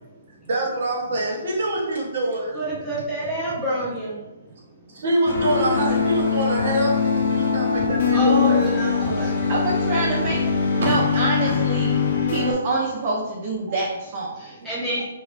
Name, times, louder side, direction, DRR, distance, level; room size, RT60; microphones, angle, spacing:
voice 1, 0.5-2.5 4.9-8.7 10.8-11.2 12.4-12.6 13.7-14.4 15.0-15.1, right 1 dB, 65° right, -2 dB, 0.8 m, -25 dB
voice 2, 2.5-4.2 8.1-9.4 14.4-15.0, right 1 dB, 5° left, -8 dB, 0.7 m, -27 dB
sound 1, 5.2-12.5, left 6 dB, 65° left, 0.5 m, -22 dB
voice 3, 9.5-10.4 10.8-11.9 12.2-14.4, right 2 dB, 35° right, -4 dB, 0.4 m, -26 dB
2.9 x 2.0 x 2.4 m, 1.0 s
hypercardioid pair, 155°, 0 cm